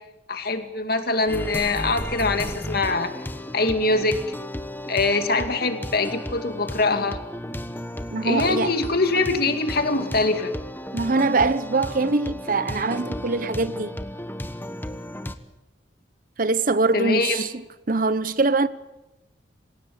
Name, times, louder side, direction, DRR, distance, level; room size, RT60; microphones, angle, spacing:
voice 1, 0.3-3.1 3.5-4.2 4.9-7.2 8.2-10.5 16.9-17.4, left 3 dB, 55° left, 2.4 m, -23 dB
sound 1, 1.3-15.3, left 1 dB, 10° left, 1.1 m, -34 dB
voice 2, 8.1-8.7 10.9-14.0 16.4-17.6 17.9-18.7, right 3 dB, 45° right, 0.8 m, -23 dB
27.0 x 16.5 x 8.8 m
head